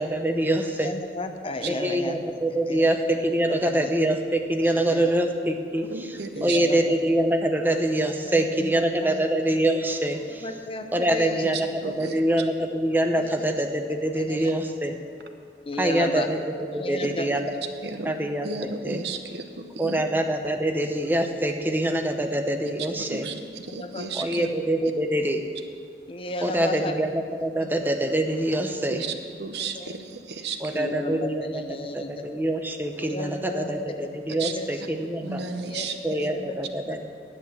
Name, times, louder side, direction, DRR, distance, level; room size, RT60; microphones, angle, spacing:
voice 1, 0.0-0.9 1.7-10.5 10.9-15.0 15.8-17.5 18.0-19.0 19.8-23.3 24.1-25.4 26.4-29.1 30.6-31.6 31.9-35.4 36.0-37.0, right 1 dB, 10° right, 4 dB, 0.8 m, -25 dB
voice 2, 0.7-2.2 2.5-2.9 3.5-3.9 4.6-5.1 6.3-6.8 8.2-8.7 9.0-9.2 10.4-11.4 13.2-13.3 14.3-14.6 15.7-16.3 16.7-17.5 23.7-24.3 26.1-27.0 27.6-27.7 29.6-30.0 30.7-32.2 33.1-34.1 34.4-34.8 35.7-37.0, left 2 dB, 30° left, 6 dB, 0.7 m, -34 dB
voice 3, 5.9-6.6 11.5-12.2 17.8-18.1 18.4-20.0 23.1-24.5 28.9-29.1 29.4-30.6 34.4-34.5 35.2-36.3, right 4 dB, 70° right, 7 dB, 0.8 m, -34 dB
10.5 x 8.0 x 7.3 m, 2.1 s
head